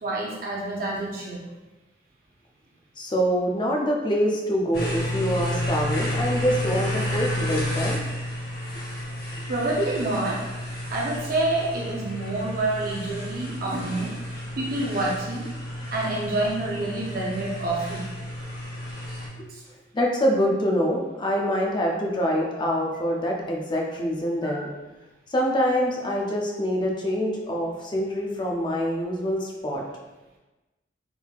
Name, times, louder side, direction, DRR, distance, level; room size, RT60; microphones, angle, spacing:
voice 1, 0.0-1.4 9.5-10.4 10.9-14.1 14.6-15.5 15.9-18.0 19.5-19.6 24.4-24.7, right 2 dB, 55° right, -4 dB, 0.6 m, -27 dB
voice 2, 3.0-8.0 19.9-24.7 25.3-29.8, equal, 25° left, -1 dB, 0.5 m, -25 dB
sound 1, 4.7-19.3, left 1 dB, 60° left, 0.9 m, -31 dB
3.5 x 3.5 x 2.3 m, 1.1 s
head